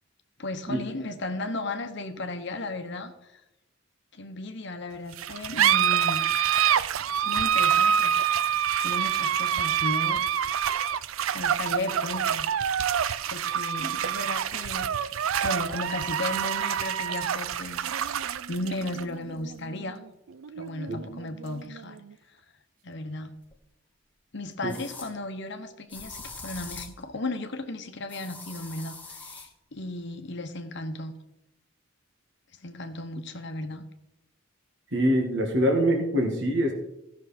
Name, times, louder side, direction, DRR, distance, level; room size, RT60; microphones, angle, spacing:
voice 1, 0.4-3.4 4.1-6.2 7.1-8.5 8.8-10.2 11.3-12.5 13.3-17.9 18.5-20.0 20.6-22.0 22.8-23.3 24.3-31.1 32.6-33.8, left 2 dB, 55° left, 7 dB, 1.0 m, -35 dB
sound 1, 5.1-22.1, right 9 dB, 80° right, 0.4 m, -27 dB
sound 2, 23.5-23.6 24.7-25.1 25.9-27.0 28.1-29.5, left 3 dB, 10° left, 1.3 m, -42 dB
voice 2, 34.9-36.7, equal, 60° right, 2 dB, 1.8 m, -24 dB
15.5 x 6.3 x 4.2 m, 0.89 s
head